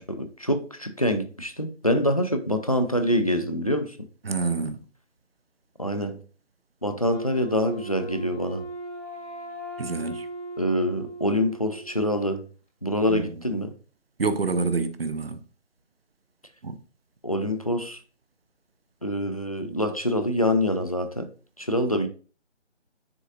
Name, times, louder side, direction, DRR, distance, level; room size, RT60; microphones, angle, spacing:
voice 1, 0.0-4.0 5.8-6.2 6.8-8.6 10.6-12.5 12.8-13.7 17.2-18.0 19.0-21.3 21.6-22.1, equal, 30° left, 0.5 m, -25 dB
voice 2, 4.2-4.8 9.8-10.3 13.1-13.2 14.2-15.4 16.6-16.8, right 4 dB, 55° right, 0.8 m, -27 dB
Wind instrument woodwind instrument, 7.1-12.1, right 2 dB, 85° left, 3.2 m, -38 dB
9.8 x 3.8 x 2.6 m
figure-of-eight pair, 160°, 36 cm